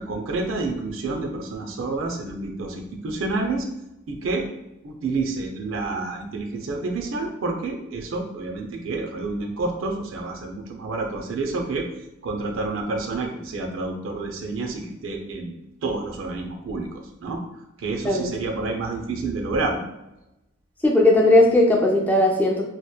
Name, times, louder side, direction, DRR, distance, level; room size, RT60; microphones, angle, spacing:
voice 1, 0.0-3.7 4.1-4.5 4.8-11.9 12.2-15.5 15.8-17.4 17.8-19.9, right 3 dB, 85° right, 3 dB, 0.4 m, -29 dB
voice 2, 20.8-22.6, left 1 dB, 10° left, -1 dB, 0.3 m, -17 dB
2.8 x 2.1 x 2.2 m, 0.91 s
head